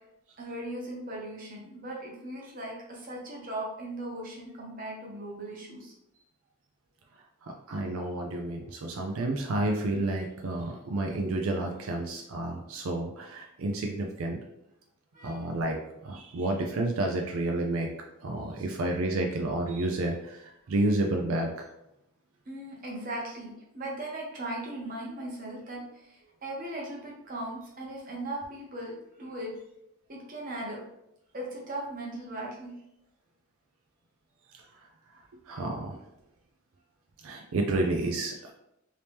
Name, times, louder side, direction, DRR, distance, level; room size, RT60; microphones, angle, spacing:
voice 1, 0.4-5.9 15.1-15.5 22.5-26.1 26.4-29.5 30.1-30.8 31.3-32.7, right 1 dB, 40° right, -2 dB, 0.9 m, -38 dB
voice 2, 7.4-14.4 15.2-17.9 18.2-21.7 34.5-34.7 35.5-36.0 37.2-38.5, right 2 dB, 85° right, 2 dB, 0.4 m, -30 dB
2.9 x 2.9 x 3.4 m, 0.84 s
head